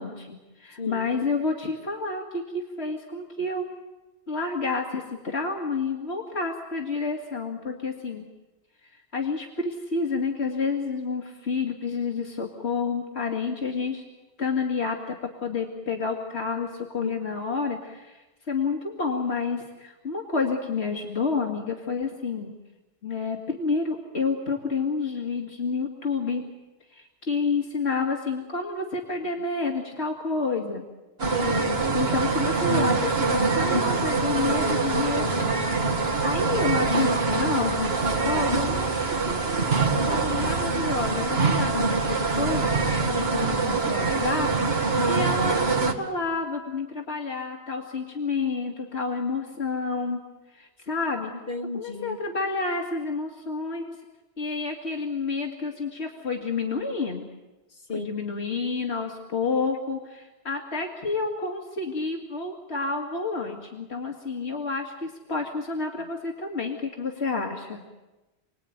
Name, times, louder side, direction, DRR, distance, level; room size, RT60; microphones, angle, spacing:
voice 1, 0.0-3.7 4.3-8.2 8.9-14.0 14.4-15.2 15.4-22.5 23.0-26.4 26.9-30.9 31.9-39.0 39.2-39.7 40.1-43.0 43.3-44.5 44.7-50.2 50.5-51.3 51.7-54.0 54.4-57.3 57.9-67.8, left 4 dB, 80° left, 1 dB, 2.4 m, -29 dB
sound 1, 31.2-45.9, right 3 dB, 70° right, 2.3 m, -24 dB
voice 2, 31.3-31.8 43.1-43.5 51.5-52.2 57.9-58.1, left 3 dB, 60° left, 5 dB, 2.0 m, -32 dB
29.0 x 20.0 x 9.3 m, 1.1 s
omnidirectional pair, 1.1 m